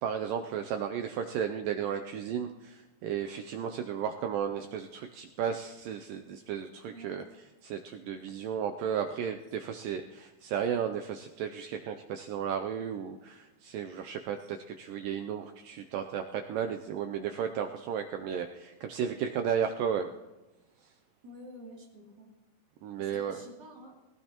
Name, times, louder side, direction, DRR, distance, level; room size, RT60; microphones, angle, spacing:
voice 1, 0.0-20.1 22.8-23.4, right 8 dB, 80° right, 6 dB, 2.0 m, -34 dB
voice 2, 6.9-7.2 14.4-14.5 21.2-22.3 23.0-24.0, equal, 30° right, -3 dB, 3.1 m, -49 dB
19.0 x 17.5 x 2.9 m, 1.1 s
omnidirectional pair, 4.5 m